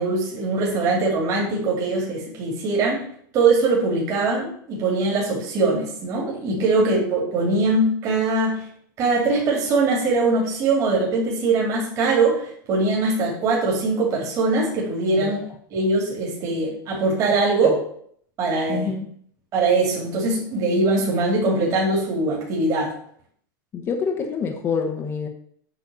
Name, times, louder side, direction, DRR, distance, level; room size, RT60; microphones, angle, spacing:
voice 1, 0.0-3.0 3.3-8.6 9.0-15.4 15.7-17.8 18.4-18.9 19.5-22.9, right 3 dB, 30° right, -3 dB, 2.6 m, -22 dB
voice 2, 6.5-6.9 15.2-15.3 17.6-17.7 18.7-19.1 23.7-25.3, left 6 dB, 25° left, 4 dB, 1.0 m, -27 dB
8.3 x 4.1 x 6.9 m, 0.63 s
supercardioid pair, 155°, 11 cm